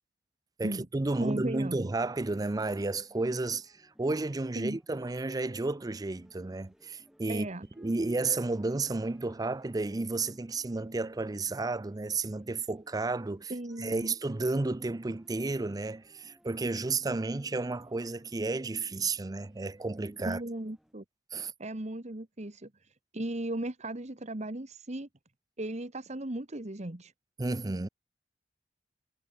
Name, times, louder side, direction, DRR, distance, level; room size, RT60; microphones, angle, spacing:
voice 1, 0.6-7.5 7.8-13.5 13.8-20.4 21.3-21.5 27.4-27.9, right 3 dB, 20° right, 0.5 m, -32 dB
voice 2, 1.2-1.9 4.5-4.8 7.3-7.7 13.5-14.1 20.2-21.0 21.6-25.1 25.6-27.1, right 1 dB, 40° right, 1.6 m, -36 dB
sound 1, 1.9-20.9, equal, 5° right, 7.4 m, -63 dB
head